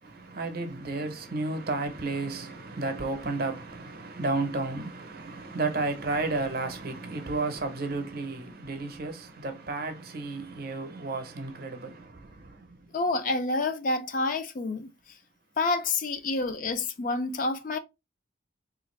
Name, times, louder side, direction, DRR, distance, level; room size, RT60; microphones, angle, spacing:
voice 1, 0.0-12.9, right 3 dB, 50° right, 0.7 m, -32 dB
voice 2, 12.9-14.9 15.6-17.8, left 3 dB, 45° left, 0.4 m, -28 dB
3.5 x 2.5 x 3.1 m
head